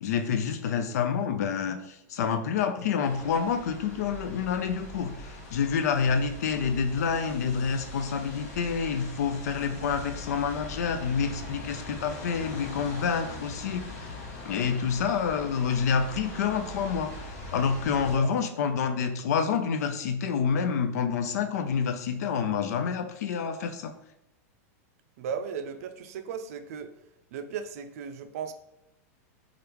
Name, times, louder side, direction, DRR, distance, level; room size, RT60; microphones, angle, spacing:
voice 1, 0.0-14.2 14.4-17.1 17.5-23.9, left 6 dB, 90° left, 8 dB, 0.4 m, -28 dB
sound 1, 3.1-18.2, left 1 dB, 75° left, 0.9 m, -41 dB
voice 2, 25.2-26.9 27.3-28.5, right 7 dB, 65° right, 8 dB, 0.4 m, -36 dB
3.3 x 2.4 x 2.9 m, 0.84 s
supercardioid pair, 155°, 8 cm